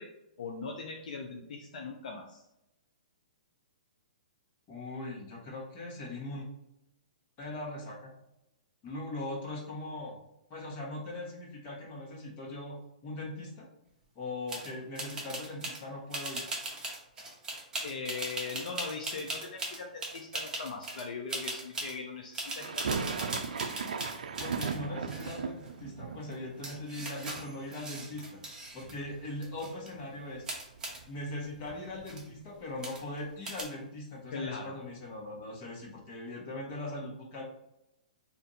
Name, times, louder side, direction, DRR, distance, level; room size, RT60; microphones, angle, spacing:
voice 1, 0.0-2.4 17.8-23.0 34.3-34.8, left 4 dB, 65° left, 1 dB, 0.5 m, -40 dB
voice 2, 4.7-6.5 7.4-8.1 8.8-10.2 10.5-12.8 13.0-13.6 14.1-16.4 24.4-28.4 28.7-30.5 31.1-37.4, left 2 dB, 30° left, -3 dB, 1.2 m, -40 dB
sound 1, 14.5-14.7 14.9-15.8 16.1-21.0 21.3-21.9 22.3-24.8 25.0-25.7 26.3-26.4 26.6-28.9 29.2-29.9 30.4-31.0 31.7-31.8 32.0-32.3 32.8-33.2 33.4-33.6, right 2 dB, 15° right, 0.9 m, -39 dB
sound 2, 22.6-28.5 28.8-29.6 29.9-30.0 30.3-32.4, right 5 dB, 75° right, 0.4 m, -38 dB
2.6 x 2.5 x 4.1 m, 0.88 s
hypercardioid pair, 130°, 4 cm